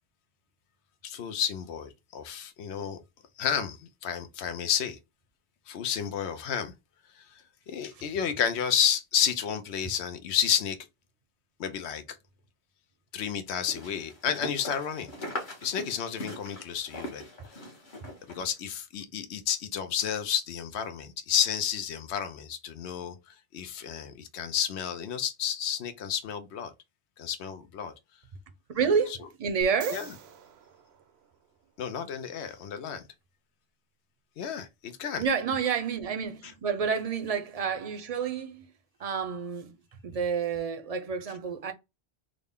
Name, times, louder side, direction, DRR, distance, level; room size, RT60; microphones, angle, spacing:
voice 1, 1.0-3.0 3.4-5.0 5.7-6.7 7.2-7.3 7.7-10.8 11.6-12.2 13.1-15.1 15.6-17.2 18.3-23.2 23.5-26.7 27.2-27.9 29.9-30.1 31.8-33.0 34.4-35.2, left 8 dB, 85° left, 0.9 m, -31 dB
sound 1, 13.5-18.5, left 1 dB, 50° left, 1.2 m, -41 dB
voice 2, 28.7-30.0 35.2-38.7 39.0-39.8 40.0-41.7, right 6 dB, 45° right, 0.6 m, -29 dB
sound 2, 29.6-31.8 35.3-35.4, right 5 dB, 75° right, 0.9 m, -47 dB
3.7 x 2.2 x 3.5 m
omnidirectional pair, 1.1 m